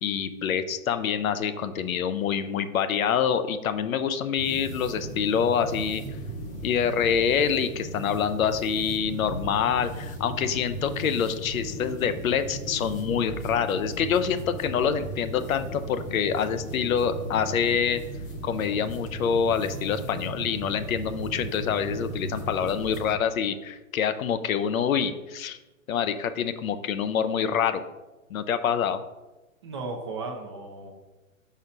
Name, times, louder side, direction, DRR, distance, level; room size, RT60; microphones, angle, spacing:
voice 1, 0.0-6.0 6.6-18.0 18.4-25.6 25.9-27.8 28.3-29.0, left 7 dB, 75° left, 11 dB, 0.7 m, -26 dB
sound 1, 4.4-23.1, right 1 dB, 20° left, 0.8 m, -36 dB
voice 2, 29.6-30.9, right 3 dB, 20° right, 2 dB, 0.4 m, -35 dB
4.7 x 4.2 x 5.3 m, 1.1 s
hypercardioid pair, 140°, 42 cm